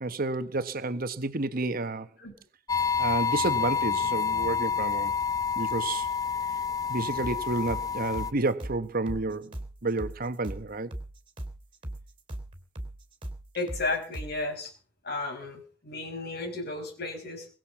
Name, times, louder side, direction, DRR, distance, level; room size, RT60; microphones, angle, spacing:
voice 1, 0.0-2.1 3.0-5.1 5.6-6.1 6.9-9.6 9.8-10.9, right 2 dB, 45° right, 1.1 m, -30 dB
sound 1, 2.7-8.3, left 6 dB, 20° left, 0.6 m, -28 dB
sound 2, 7.2-14.4, right 1 dB, 25° right, 3.2 m, -39 dB
voice 2, 13.5-14.7 15.0-17.5, left 2 dB, 55° left, 5.4 m, -33 dB
22.0 x 7.5 x 7.4 m
head